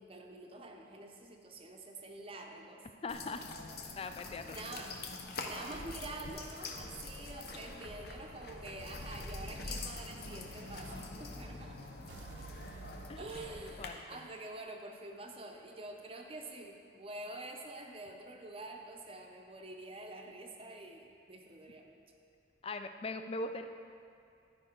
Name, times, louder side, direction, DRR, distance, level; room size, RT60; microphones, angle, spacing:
voice 1, 0.0-2.8 4.5-4.9 5.5-11.9 13.2-22.0, right 2 dB, 30° right, 2 dB, 0.6 m, -47 dB
voice 2, 3.0-3.5 4.0-4.6 13.1-13.2 13.8-14.2 22.6-23.7, left 2 dB, 30° left, 8 dB, 0.3 m, -40 dB
sound 1, 3.1-13.9, left 3 dB, 55° left, 0.7 m, -45 dB
Explosion, 8.4-11.1 12.1-14.1, right 5 dB, 80° right, 0.3 m, -55 dB
11.0 x 4.9 x 4.4 m, 2.4 s
head